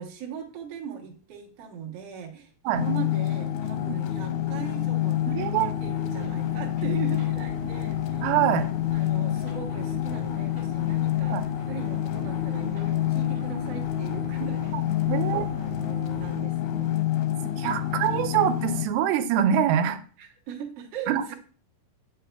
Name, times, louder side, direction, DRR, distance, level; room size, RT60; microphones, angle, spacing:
voice 1, 0.0-8.3 8.9-11.4 11.7-14.8 15.6-16.9 20.2-21.3, right 7 dB, 70° right, -1 dB, 1.5 m, -39 dB
sound 1, 2.7-18.9, left 12 dB, 80° left, 2.5 m, -28 dB
sound 2, 5.1-16.4, right 2 dB, 40° right, 2.4 m, -45 dB
voice 2, 5.3-5.7 8.2-8.7 11.3-11.4 14.9-15.5 17.6-20.0 21.1-21.3, right 10 dB, 85° right, 10 dB, 2.5 m, -24 dB
7.8 x 5.6 x 2.2 m, 0.41 s
omnidirectional pair, 4.4 m